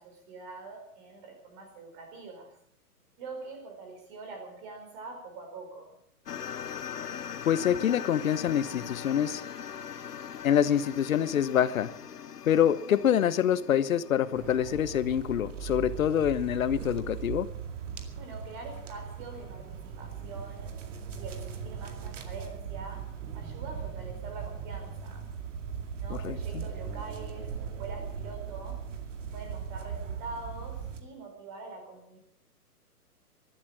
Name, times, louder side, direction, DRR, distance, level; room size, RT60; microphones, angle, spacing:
voice 1, 0.0-2.5 3.2-6.0 18.2-20.8 21.1-25.3 26.0-28.8 29.3-32.2, right 3 dB, 30° right, 4 dB, 4.7 m, -44 dB
sound 1, 6.3-15.7, left 8 dB, 80° left, 1.5 m, -41 dB
voice 2, 7.5-9.4 10.4-11.9 12.5-17.5 26.1-26.6, left 9 dB, 60° left, 15 dB, 1.1 m, -26 dB
sound 2, 14.3-31.0, right 7 dB, 50° right, 2.3 m, -39 dB
15.0 x 12.0 x 7.5 m, 0.72 s
hypercardioid pair, 155°, 47 cm